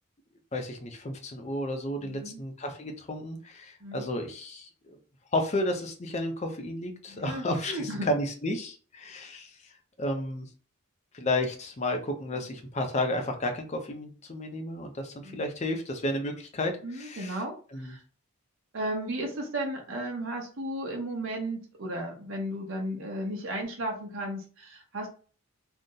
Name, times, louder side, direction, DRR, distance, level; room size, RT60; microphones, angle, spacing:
voice 1, 0.5-5.0 5.3-9.5 10.0-10.5 11.1-17.4 17.7-17.9, left 1 dB, 30° left, 4 dB, 0.5 m, -32 dB
voice 2, 2.0-2.4 3.8-4.1 7.1-8.1 12.3-12.5 15.2-15.4 16.8-18.0 18.7-25.1, right 1 dB, 60° right, 1 dB, 0.7 m, -35 dB
2.6 x 2.1 x 3.7 m, 0.39 s
head